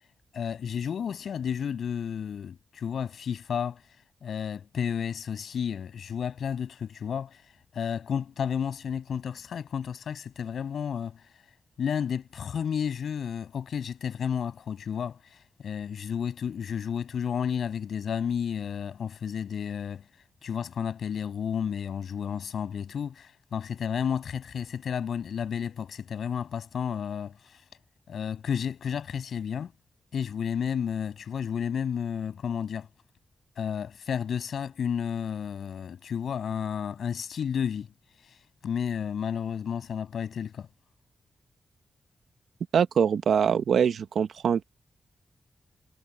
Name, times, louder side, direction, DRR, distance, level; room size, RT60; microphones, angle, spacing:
voice 1, 0.3-3.8 4.2-7.4 7.7-11.2 11.8-15.2 15.6-20.0 20.4-27.6 28.1-29.7 30.1-32.9 33.6-37.9 38.6-40.7, left 7 dB, 80° left, 7.2 m, -32 dB
voice 2, 42.7-44.6, right 7 dB, 85° right, 1.1 m, -23 dB
wide cardioid pair, 145°, 0 cm